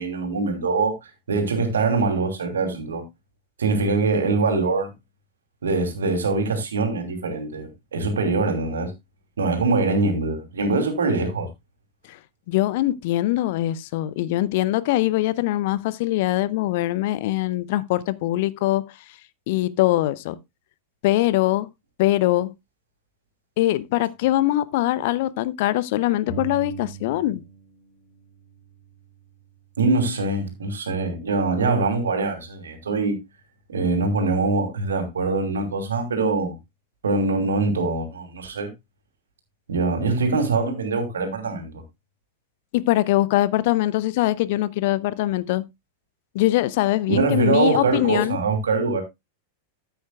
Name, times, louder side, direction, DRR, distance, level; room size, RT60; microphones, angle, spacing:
voice 1, 0.0-3.0 3.6-4.9 5.6-8.9 9.4-11.5 29.8-33.2 33.7-36.5 37.0-38.7 39.7-41.8 47.1-49.0, right 3 dB, 70° right, 2.8 m, -23 dB
voice 2, 12.5-18.8 19.5-20.4 21.0-21.7 22.0-22.5 23.6-27.4 42.7-45.6 46.3-48.4, left 15 dB, 50° left, 0.6 m, -22 dB
sound 1, 26.3-27.8 28.0-29.8, right 5 dB, 35° left, 2.8 m, -40 dB
14.0 x 8.0 x 2.3 m
figure-of-eight pair, 90°, 0 cm